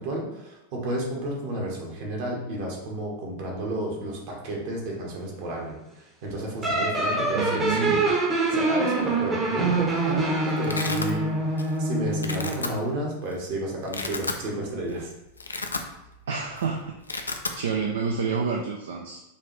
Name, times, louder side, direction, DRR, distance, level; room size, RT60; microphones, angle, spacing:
voice 1, 0.0-8.1 8.5-15.1, right 1 dB, 50° right, -2 dB, 1.2 m, -32 dB
sound 1, 6.6-12.7, right 2 dB, 20° right, 0.8 m, -25 dB
voice 2, 7.4-8.1 16.3-19.2, right 5 dB, 65° right, 1 dB, 0.4 m, -29 dB
Domestic sounds home sounds, 9.6-10.0 10.2-11.1 11.6-11.8 12.1-12.7 13.3-13.4 13.8-14.4 14.8-15.0 15.3-16.2 16.5-16.7 16.9-17.6, left 3 dB, 80° left, 0.3 m, -32 dB
5.0 x 2.5 x 3.1 m, 0.94 s
figure-of-eight pair, 90°, 0 cm